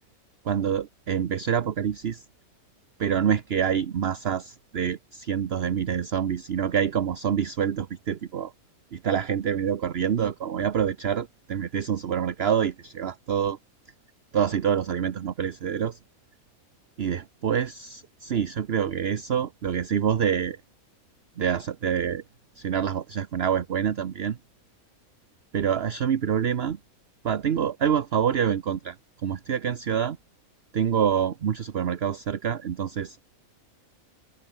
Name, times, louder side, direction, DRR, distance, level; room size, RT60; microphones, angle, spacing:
voice 1, 0.4-2.2 3.0-8.5 8.9-13.6 14.3-16.0 17.0-20.6 21.4-22.2 22.6-24.4 25.5-26.8 27.2-30.2 30.7-33.2, right 8 dB, 50° right, 1.0 m, -26 dB
omnidirectional pair, 1.5 m